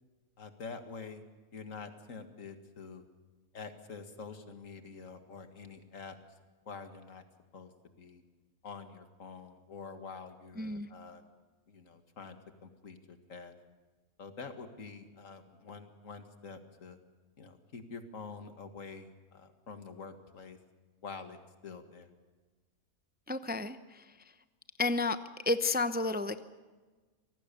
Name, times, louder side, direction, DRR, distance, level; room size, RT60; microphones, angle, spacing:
voice 1, 0.4-1.2 1.5-3.1 3.5-6.2 6.7-7.2 7.5-7.7 8.0-8.2 8.6-11.2 11.7-13.5 14.2-17.0 17.4-20.6 21.0-22.1, left 5 dB, 60° left, 7 dB, 2.1 m, -47 dB
voice 2, 10.6-10.9 23.3-24.0 24.8-25.2 25.5-26.4, left 3 dB, 15° right, 11 dB, 0.4 m, -31 dB
25.5 x 18.0 x 6.9 m, 1.3 s
omnidirectional pair, 1.5 m